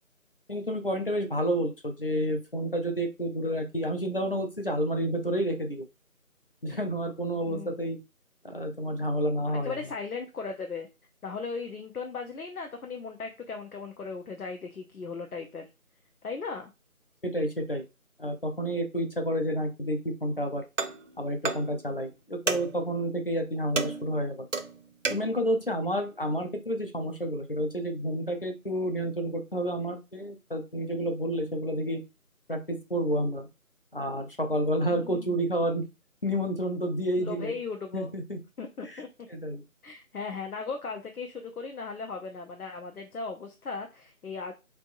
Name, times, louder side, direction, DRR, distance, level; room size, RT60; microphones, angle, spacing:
voice 1, 0.5-5.8 6.6-8.0 8.4-9.8 17.2-17.8 18.2-20.6 21.2-24.4 25.1-32.0 32.5-33.5 33.9-35.8 36.2-37.5 37.9-38.4 38.8-39.0 39.3-39.6, equal, 40° left, 5 dB, 0.6 m, -30 dB
voice 2, 7.5-7.8 9.5-10.9 11.2-15.7 16.2-16.7 34.9-35.4 37.2-38.1 38.6-39.1 39.8-44.5, left 4 dB, 85° left, 3 dB, 0.8 m, -37 dB
sound 1, 20.8-21.1 21.5-21.8 22.5-22.8 23.8-25.4, right 4 dB, 60° right, 0.6 m, -31 dB
3.9 x 3.4 x 2.5 m, 0.27 s
figure-of-eight pair, 170°, 43 cm